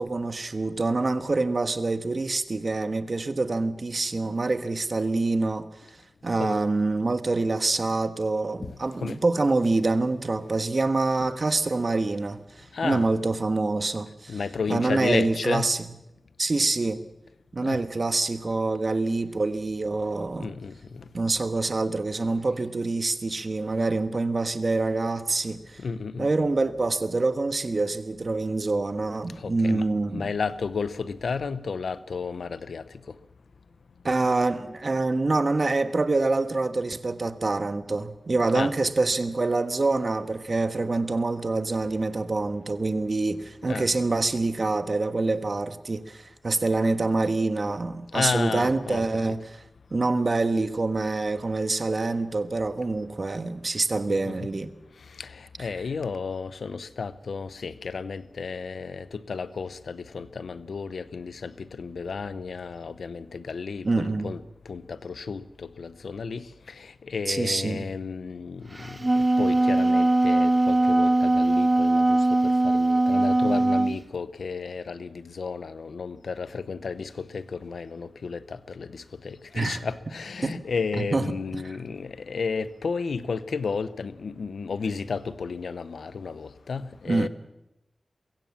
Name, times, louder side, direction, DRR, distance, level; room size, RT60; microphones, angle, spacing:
voice 1, 0.0-5.7 6.2-14.4 14.7-15.8 16.4-17.0 17.5-20.5 21.1-25.8 26.2-30.3 34.0-49.6 49.9-54.7 55.6-55.7 63.8-64.3 67.3-67.9 79.5-79.8 80.4-80.6 81.0-81.3 81.5-81.7 87.1-87.3, right 3 dB, 55° right, 1.4 m, -26 dB
voice 2, 12.7-13.1 14.3-15.7 17.6-17.8 20.4-21.0 25.8-26.3 29.4-29.9 30.1-32.8 38.5-38.7 43.6-43.9 47.7-47.8 48.1-49.4 54.1-54.5 55.2-64.4 64.7-87.3, left 5 dB, 90° left, 0.8 m, -33 dB
Wind instrument woodwind instrument, 68.8-74.0, right 2 dB, 30° right, 0.8 m, -21 dB
22.0 x 16.5 x 7.3 m
cardioid pair, 50°, 0 cm